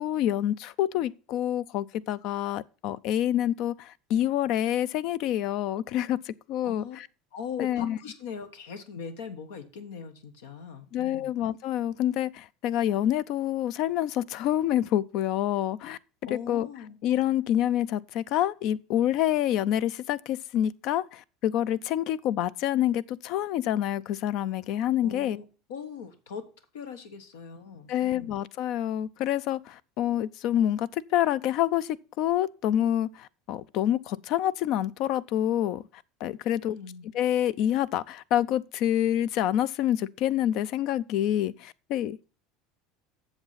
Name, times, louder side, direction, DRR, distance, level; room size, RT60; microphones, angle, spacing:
voice 1, 0.0-7.1 7.6-8.0 10.9-16.0 16.3-16.7 17.0-25.4 27.9-31.9 32.2-35.8 36.2-36.8 37.1-42.3, left 11 dB, 60° left, 0.5 m, -27 dB
voice 2, 6.6-7.0 7.3-11.3 16.2-17.0 25.0-26.4 26.7-28.4 36.6-37.1, left 6 dB, 85° left, 1.2 m, -40 dB
8.0 x 7.0 x 5.7 m
supercardioid pair, 110°, 0 cm